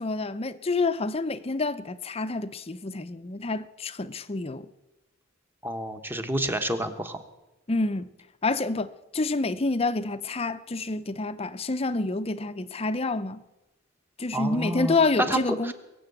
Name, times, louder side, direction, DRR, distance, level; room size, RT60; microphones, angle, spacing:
voice 1, 0.0-4.7 7.7-8.1 8.4-13.4 14.2-15.7, left 3 dB, 30° left, 0.6 m, -28 dB
voice 2, 5.6-7.2 14.3-15.0 15.3-15.7, right 1 dB, 10° right, 1.1 m, -29 dB
22.5 x 7.8 x 7.9 m
head